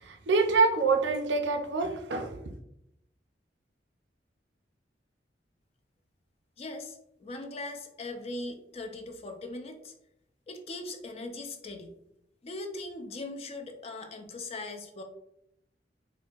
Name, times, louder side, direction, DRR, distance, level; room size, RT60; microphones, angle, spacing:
voice 1, 0.0-2.4, right 4 dB, 90° right, 4 dB, 0.6 m, -26 dB
voice 2, 6.6-9.9 10.5-12.0 12.4-15.0, left 2 dB, 35° left, 5 dB, 0.4 m, -40 dB
4.2 x 2.6 x 2.4 m, 0.78 s
head